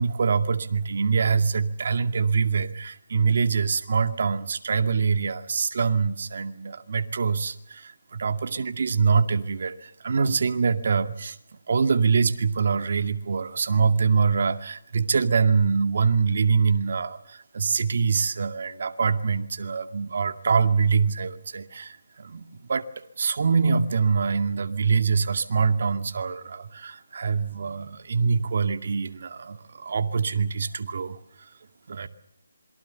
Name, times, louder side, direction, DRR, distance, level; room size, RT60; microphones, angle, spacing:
voice 1, 0.0-11.4 11.7-22.4 22.7-31.2 31.9-32.1, right 5 dB, 55° right, 9 dB, 2.1 m, -24 dB
27.0 x 23.0 x 6.9 m, 0.73 s
figure-of-eight pair, 160°, 0 cm